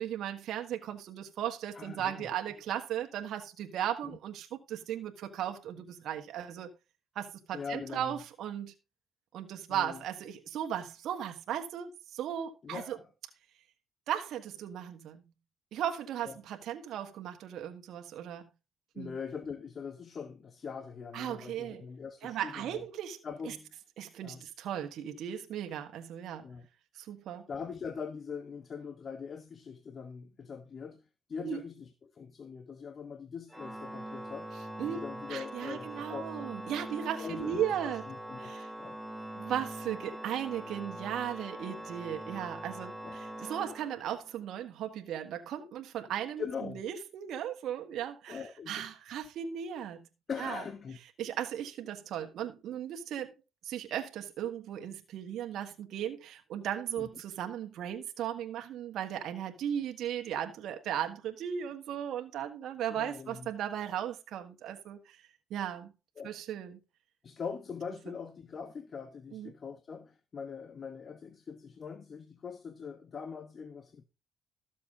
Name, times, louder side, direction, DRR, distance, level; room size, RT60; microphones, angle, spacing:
voice 1, 0.0-6.7 7.1-8.7 9.3-13.0 14.1-15.2 15.7-18.5 19.0-19.2 21.1-21.8 22.2-23.5 24.0-26.4 26.9-27.5 31.4-31.6 34.8-35.0 35.3-38.0 38.4-38.7 39.4-46.4 46.7-50.0 50.4-50.6 51.2-53.3 53.6-65.2 65.5-65.9 66.2-66.8 69.3-69.5, right 10 dB, 75° right, 1.5 m, -36 dB
voice 2, 1.7-2.3 4.0-4.2 7.5-8.2 9.7-10.0 12.6-13.0 16.2-16.3 18.9-22.9 23.2-23.8 24.2-24.4 26.4-26.7 27.5-31.0 31.3-34.5 34.8-36.5 37.2-39.0 43.0-43.2 46.4-46.8 48.3-48.9 50.3-51.0 57.0-57.1 62.9-63.5 66.2-66.3 67.2-74.0, left 6 dB, 45° left, 1.1 m, -42 dB
Organ, 33.5-44.4, right 1 dB, 5° right, 1.7 m, -43 dB
13.5 x 7.3 x 3.6 m
cardioid pair, 90°, 0 cm